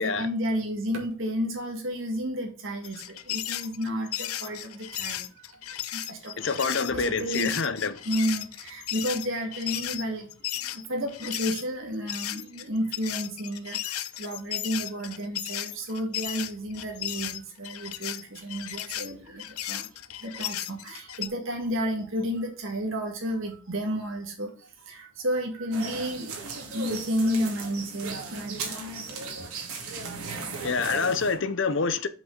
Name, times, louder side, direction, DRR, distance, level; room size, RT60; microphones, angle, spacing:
voice 1, 0.0-5.6 5.9-7.6 8.1-28.8, equal, 65° right, 2.0 m, -32 dB
sound 1, 2.8-11.6 12.1-21.3, left 13 dB, 90° left, 0.6 m, -35 dB
voice 2, 6.4-8.0 30.4-32.1, left 4 dB, 60° left, 0.8 m, -27 dB
sound 2, 25.7-31.3, right 4 dB, 85° right, 2.3 m, -36 dB
7.5 x 5.6 x 4.0 m
head